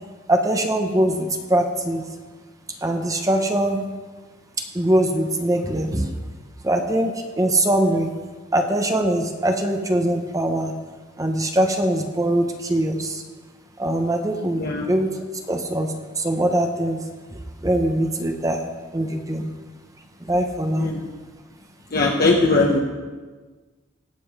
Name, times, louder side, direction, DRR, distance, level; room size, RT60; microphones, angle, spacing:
voice 1, 0.3-2.1 2.8-3.8 4.6-6.1 6.6-8.1 8.5-10.7 11.2-13.2 13.8-15.2 15.5-17.0 17.3-18.6 18.9-19.5 20.2-20.9, right 1 dB, 15° right, 4 dB, 0.9 m, -22 dB
voice 2, 21.9-22.8, left 3 dB, 50° left, -1 dB, 1.1 m, -19 dB
18.0 x 7.7 x 4.9 m, 1.4 s
head